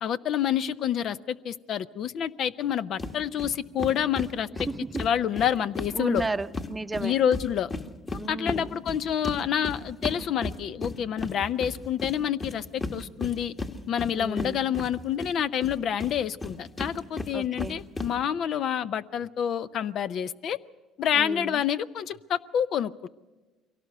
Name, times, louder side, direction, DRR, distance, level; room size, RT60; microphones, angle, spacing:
voice 1, 0.0-4.7 5.0-6.2 7.0-7.7 8.3-13.5 13.9-20.6 21.0-23.1, left 9 dB, 60° left, 15 dB, 0.6 m, -28 dB
sound 1, 3.0-3.1 3.4-3.5 3.8-6.7 6.9-15.3 15.6-18.1, left 3 dB, 25° left, 1.7 m, -34 dB
voice 2, 4.6-5.1 5.9-7.2 8.2-8.8 14.1-14.7 17.3-17.8 21.1-21.6, right 3 dB, 20° right, 11 dB, 0.7 m, -34 dB
23.0 x 17.5 x 6.7 m, 1.2 s
supercardioid pair, 90°, 0 cm